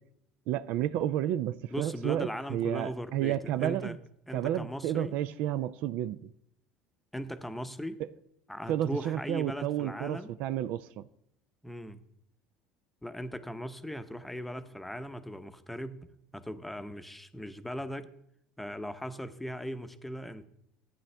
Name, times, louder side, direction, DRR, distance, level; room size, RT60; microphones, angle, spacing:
voice 1, 0.5-4.0 4.3-6.3 8.0-8.1 8.7-11.0, right 12 dB, 65° right, 0.4 m, -31 dB
voice 2, 1.7-4.0 4.3-5.2 7.1-8.0 8.5-10.3 11.6-12.0 13.0-16.1 16.3-18.1 18.6-20.4, equal, 5° left, 0.8 m, -39 dB
14.0 x 9.2 x 3.3 m
hypercardioid pair, 85°, 3 cm